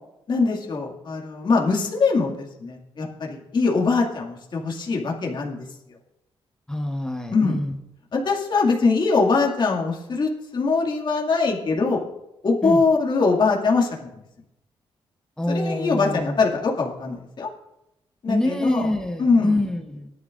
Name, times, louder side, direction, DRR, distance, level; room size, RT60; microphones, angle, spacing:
voice 1, 0.3-6.0 7.3-7.6 8.1-12.1 12.4-14.1 15.5-17.5 18.2-18.9 19.2-19.6, left 4 dB, 50° left, -1 dB, 2.1 m, -22 dB
voice 2, 6.7-7.8 12.6-12.8 15.4-16.4 18.3-20.1, left 1 dB, 5° left, 4 dB, 1.1 m, -25 dB
19.0 x 11.0 x 2.5 m, 0.89 s
cardioid pair, 95°, 10 cm